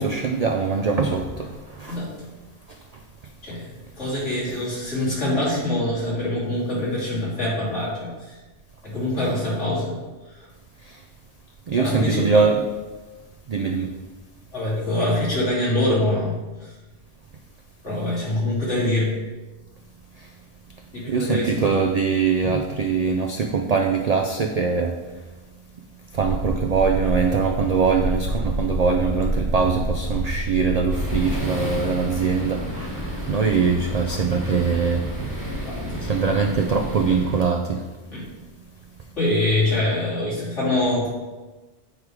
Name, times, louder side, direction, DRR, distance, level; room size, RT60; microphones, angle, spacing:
voice 1, 0.0-2.0 11.7-12.6 13.5-13.9 21.1-24.9 26.1-35.3 36.0-37.8, right 5 dB, 90° right, 4 dB, 0.3 m, -22 dB
voice 2, 3.4-8.4 8.8-10.0 11.7-12.4 14.5-16.7 17.8-19.1 20.9-21.8 35.6-36.0 38.1-38.2 39.2-41.1, left 1 dB, 75° left, -7 dB, 2.8 m, -24 dB
sound 1, 26.1-31.3, right 1 dB, 70° right, 1.0 m, -27 dB
sound 2, 30.9-37.4, equal, 15° right, 1.2 m, -31 dB
8.8 x 3.2 x 4.8 m, 1.2 s
omnidirectional pair, 1.2 m